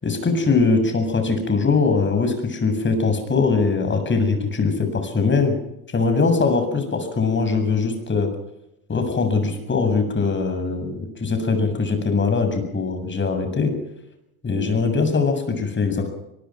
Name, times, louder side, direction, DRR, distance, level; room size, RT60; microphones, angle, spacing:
voice 1, 0.0-5.6 5.9-8.3 8.9-13.7 14.4-16.1, left 4 dB, 30° left, 6 dB, 7.6 m, -21 dB
23.0 x 21.0 x 6.2 m, 0.85 s
supercardioid pair, 95°, 41 cm